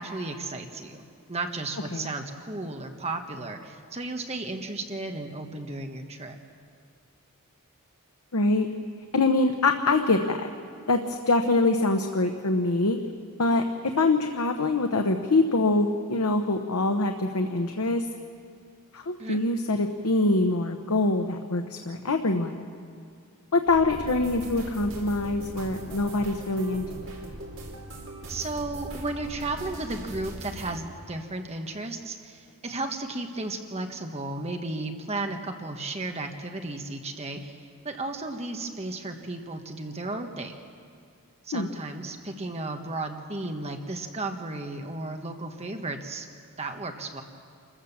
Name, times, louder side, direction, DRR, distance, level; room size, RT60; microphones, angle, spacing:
voice 1, 0.0-6.4 19.2-19.4 28.3-37.6 37.8-40.5 41.5-46.3 46.6-47.2, right 2 dB, 30° right, 5 dB, 1.3 m, -34 dB
voice 2, 8.3-8.7 9.1-10.5 10.9-13.0 13.4-18.0 18.9-22.6 23.5-27.0 41.5-41.7, left 2 dB, 85° left, 5 dB, 1.0 m, -24 dB
sound 1, 23.7-30.8, right 1 dB, 60° right, 3.9 m, -40 dB
26.5 x 15.0 x 7.3 m, 2.3 s
head